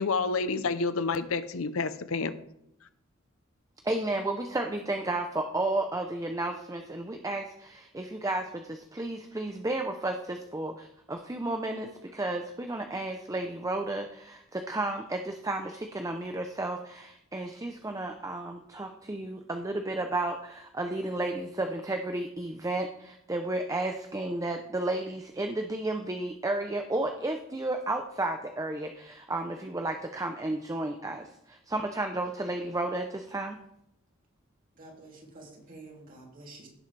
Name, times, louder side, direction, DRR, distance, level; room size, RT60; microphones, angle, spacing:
voice 1, 0.0-2.3, left 4 dB, 75° left, 0.7 m, -29 dB
voice 2, 3.8-33.6, right 2 dB, 15° right, 0.6 m, -32 dB
voice 3, 34.8-36.7, right 2 dB, 40° right, 3.0 m, -49 dB
16.5 x 7.3 x 3.3 m
head